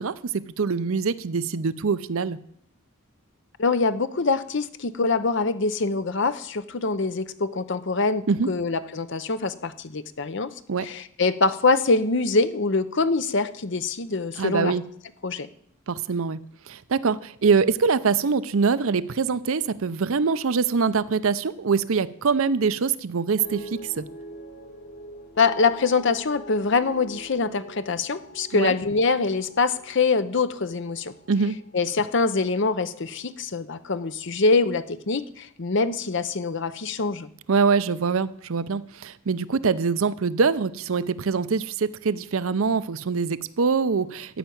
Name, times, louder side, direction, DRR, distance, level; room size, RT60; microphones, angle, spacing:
voice 1, 0.0-2.4 8.3-8.5 10.7-10.9 14.4-14.8 15.9-16.4 16.7-24.1 28.5-28.7 31.3-31.6 37.5-44.4, right 5 dB, 70° right, 0.6 m, -24 dB
voice 2, 3.6-10.5 10.8-14.7 15.2-15.5 25.4-31.1 31.7-37.3, left 3 dB, 55° left, 0.7 m, -24 dB
sound 1, 23.4-33.7 34.0-34.6, equal, 35° left, 1.8 m, -44 dB
13.5 x 5.7 x 9.2 m
head